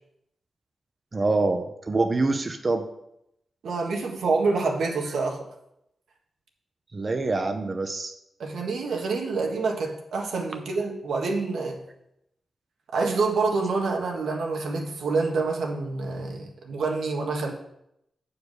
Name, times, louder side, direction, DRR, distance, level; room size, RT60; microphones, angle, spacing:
voice 1, 1.1-2.9 6.9-8.1, right 3 dB, 30° right, 5 dB, 0.6 m, -25 dB
voice 2, 3.6-5.4 8.4-11.8 12.9-17.5, right 4 dB, 90° right, 0 dB, 1.5 m, -27 dB
8.1 x 4.7 x 6.5 m, 0.80 s
wide cardioid pair, 115°, 0 cm